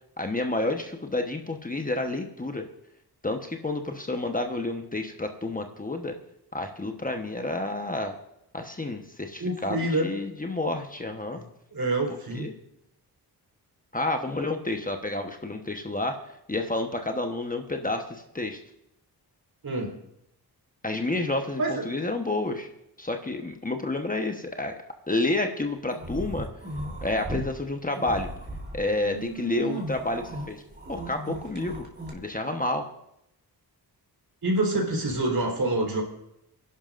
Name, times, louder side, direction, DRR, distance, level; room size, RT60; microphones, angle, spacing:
voice 1, 0.2-2.7 3.2-6.2 6.5-8.1 8.5-11.4 12.3-12.5 13.9-16.2 16.5-18.6 20.8-22.7 23.0-24.7 25.1-26.5 27.0-28.3 28.7-30.6 30.9-31.9 32.1-32.9, left 2 dB, 20° left, 4 dB, 1.1 m, -29 dB
voice 2, 9.4-10.1 11.3-12.5 19.6-19.9 21.6-21.9 34.4-36.0, right 2 dB, 60° right, 0 dB, 4.0 m, -27 dB
sound 1, 25.9-27.5 27.9-32.1, right 1 dB, 25° right, 3.4 m, -36 dB
25.5 x 11.5 x 2.6 m, 0.80 s
cardioid pair, 70°, 40 cm